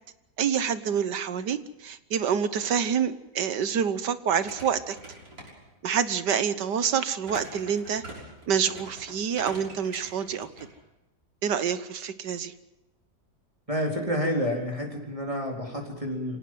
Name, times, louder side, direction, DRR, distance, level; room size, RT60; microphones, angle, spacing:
voice 1, 0.4-5.0 5.8-8.0 8.5-10.5 11.4-12.5, right 7 dB, 80° right, 13 dB, 1.8 m, -27 dB
sound 1, 4.4-6.1 7.2-10.7, right 1 dB, 60° right, 6.8 m, -44 dB
voice 2, 13.7-16.4, equal, 20° right, 0 dB, 4.1 m, -29 dB
26.5 x 18.0 x 7.7 m, 0.94 s
omnidirectional pair, 1.8 m